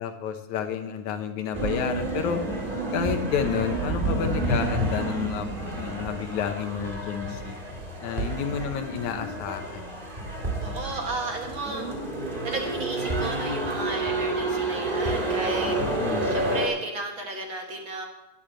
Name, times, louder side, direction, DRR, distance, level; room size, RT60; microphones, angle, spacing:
voice 1, 0.0-2.4 2.9-7.6 8.0-9.9 15.8-16.3, left 8 dB, 80° left, 7 dB, 2.3 m, -30 dB
sound 1, 1.5-16.7, right 2 dB, 20° right, 1.9 m, -29 dB
voice 2, 10.6-11.9 12.4-15.8 16.3-18.1, right 2 dB, 50° right, 2 dB, 1.8 m, -33 dB
10.5 x 8.6 x 7.6 m, 0.98 s
omnidirectional pair, 3.4 m